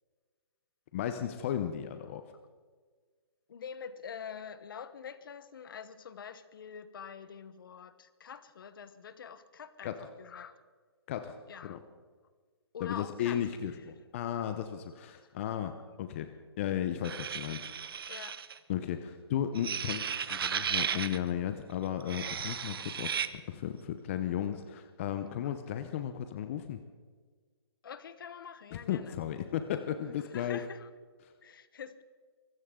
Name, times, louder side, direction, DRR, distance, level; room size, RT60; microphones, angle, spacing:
voice 1, 0.9-2.2 9.8-10.0 11.1-11.4 11.6-11.8 12.8-16.3 16.6-18.1 18.7-23.2 23.5-26.8 28.7-30.6 31.2-31.3, left 10 dB, 30° left, 9 dB, 0.7 m, -35 dB
voice 2, 3.5-10.5 11.5-11.8 12.7-13.4 18.1-18.4 27.8-29.2 30.2-30.9 31.4-32.0, left 7 dB, 50° left, 14 dB, 1.1 m, -45 dB
sound 1, 17.0-18.6 19.6-21.2 22.0-23.3, right 7 dB, 55° right, 0.8 m, -35 dB
23.0 x 15.5 x 3.8 m, 1.5 s
hypercardioid pair, 160°, 14 cm